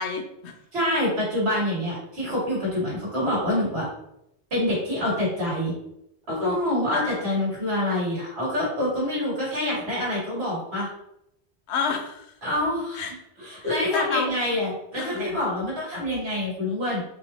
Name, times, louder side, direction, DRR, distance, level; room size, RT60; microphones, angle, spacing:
voice 1, 0.0-0.5 6.9-7.3 11.7-12.3 12.9-13.1 13.6-14.4 14.9-15.4, left 5 dB, 85° left, 5 dB, 0.9 m, -30 dB
voice 2, 0.7-3.9 4.5-5.7 6.3-10.9 12.4-13.1 13.4-17.0, left 1 dB, 75° right, -6 dB, 2.0 m, -26 dB
4.7 x 2.5 x 3.1 m, 0.81 s
omnidirectional pair, 1.1 m